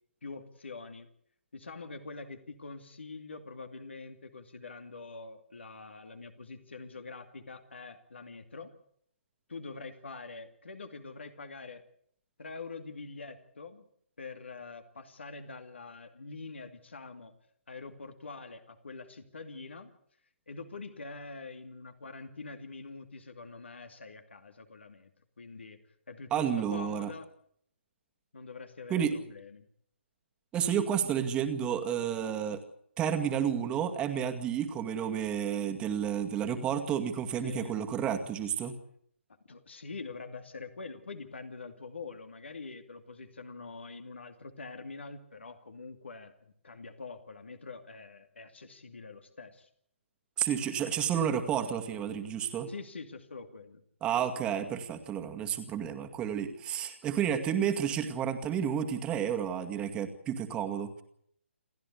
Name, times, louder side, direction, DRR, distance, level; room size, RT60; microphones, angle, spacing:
voice 1, 0.2-1.1 1.5-8.7 9.5-11.8 12.4-13.8 14.2-17.3 17.7-19.9 20.5-25.1 25.4-25.8 26.1-27.3 28.3-29.6 37.4-37.8 39.5-49.7 52.7-53.8, left 4 dB, 65° left, 7 dB, 2.5 m, -45 dB
voice 2, 26.3-27.1 28.9-29.1 30.5-32.6 33.0-38.8 50.4-52.7 54.0-61.0, right 8 dB, 15° right, 6 dB, 2.1 m, -31 dB
28.5 x 13.5 x 8.4 m, 0.67 s
figure-of-eight pair, 135°, 7 cm